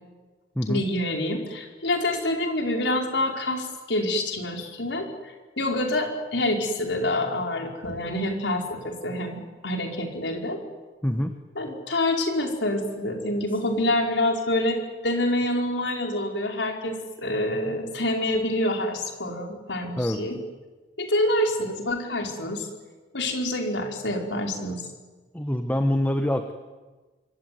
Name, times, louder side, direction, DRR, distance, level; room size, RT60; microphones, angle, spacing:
voice 1, 0.7-10.6 11.6-20.4 21.0-22.7 23.1-24.8, left 1 dB, 75° left, 2 dB, 5.2 m, -27 dB
voice 2, 11.0-11.3 20.0-20.2 25.3-26.5, left 1 dB, 10° left, 7 dB, 1.3 m, -25 dB
25.5 x 24.5 x 9.5 m, 1.3 s
head